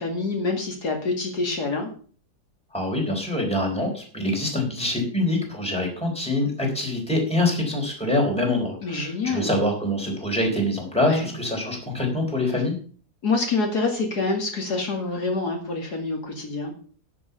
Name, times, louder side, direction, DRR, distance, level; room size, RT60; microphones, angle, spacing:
voice 1, 0.0-1.9 8.8-9.5 11.0-11.3 13.2-16.7, left 3 dB, 70° left, 2 dB, 2.8 m, -26 dB
voice 2, 2.7-12.7, left 1 dB, 5° left, 0 dB, 4.1 m, -25 dB
11.0 x 7.2 x 7.0 m, 0.43 s
omnidirectional pair, 1.8 m